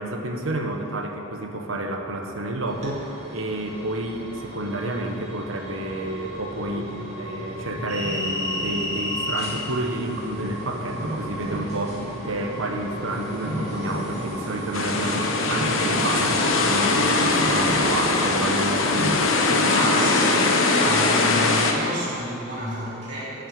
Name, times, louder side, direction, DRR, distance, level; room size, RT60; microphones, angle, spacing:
voice 1, 0.0-20.2, right 1 dB, 80° right, 3 dB, 1.2 m, -30 dB
sound 1, 2.7-19.2, equal, 35° right, 2.7 m, -31 dB
sound 2, 14.7-21.7, left 3 dB, 80° left, 1.1 m, -21 dB
voice 2, 19.5-23.5, equal, 60° right, -8 dB, 3.1 m, -29 dB
11.0 x 6.4 x 8.9 m, 3.0 s
head